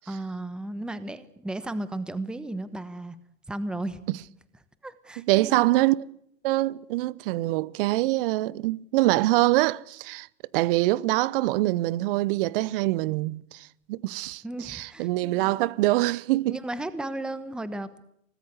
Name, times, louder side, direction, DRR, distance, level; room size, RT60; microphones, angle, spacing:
voice 1, 0.1-3.2 3.5-4.0 4.8-5.6 14.4-15.6 16.5-18.0, right 1 dB, ahead, 1.1 m, -34 dB
voice 2, 5.2-6.0 6.4-10.3 10.5-16.6, right 18 dB, 45° right, 0.8 m, -24 dB
24.5 x 19.0 x 8.1 m
hypercardioid pair, 120°, 40 cm